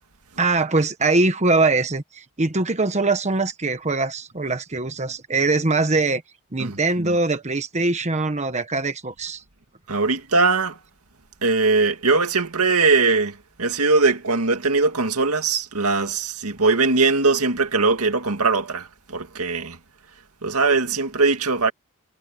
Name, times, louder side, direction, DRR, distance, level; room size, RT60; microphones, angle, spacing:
voice 1, 0.4-6.2 6.5-9.4, right 3 dB, 30° right, 1.2 m, -22 dB
voice 2, 6.6-7.2 9.9-10.8 11.4-19.8 20.4-21.7, right 3 dB, 85° right, 2.2 m, -21 dB
head